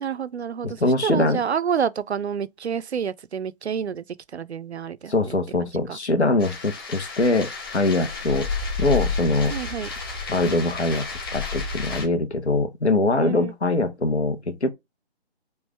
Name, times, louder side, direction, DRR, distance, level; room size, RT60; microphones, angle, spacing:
voice 1, 0.0-4.1 4.3-5.4 5.9-6.0 9.5-9.9 13.2-13.5, right 7 dB, 80° right, 0.5 m, -28 dB
voice 2, 0.6-1.4 5.1-8.5 8.8-9.5 10.3-11.1 11.3-14.7, left 2 dB, 85° left, 1.1 m, -23 dB
sound 1, 6.4-12.1, left 4 dB, 20° left, 1.1 m, -30 dB
4.6 x 2.5 x 3.2 m
figure-of-eight pair, 150°, 33 cm